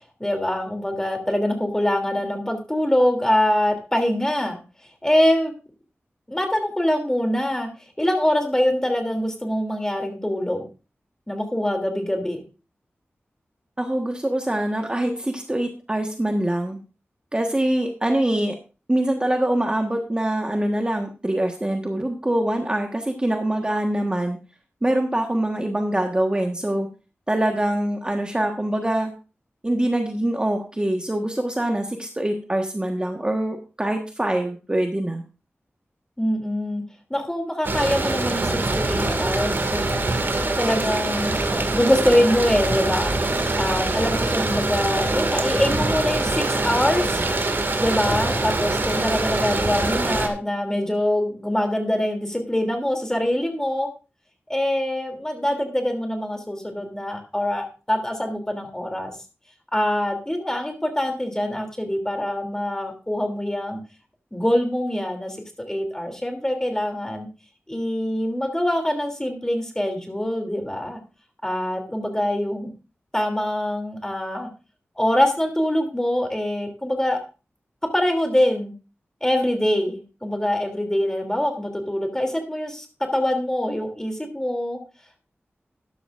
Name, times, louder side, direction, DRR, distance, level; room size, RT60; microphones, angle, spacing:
voice 1, 0.2-4.6 5.0-5.5 6.3-7.7 8.0-10.6 11.3-12.4 36.2-36.8 37.1-40.2 40.6-41.4 41.7-43.2 43.6-47.2 47.8-53.9 54.5-59.1 59.7-63.8 64.3-65.4 65.6-67.3 67.7-71.0 71.4-72.7 73.1-74.5 75.0-77.2 77.9-78.7 79.2-82.8 83.1-84.8, left 1 dB, 15° left, 4 dB, 2.9 m, -24 dB
voice 2, 13.8-16.8 17.3-18.6 18.9-24.4 24.8-26.9 27.3-29.1 29.6-35.2, right 1 dB, 20° right, 3 dB, 1.4 m, -24 dB
sound 1, 37.6-50.3, right 2 dB, 55° right, 2.1 m, -24 dB
13.0 x 11.0 x 2.5 m, 0.33 s
wide cardioid pair, 70°, 4 cm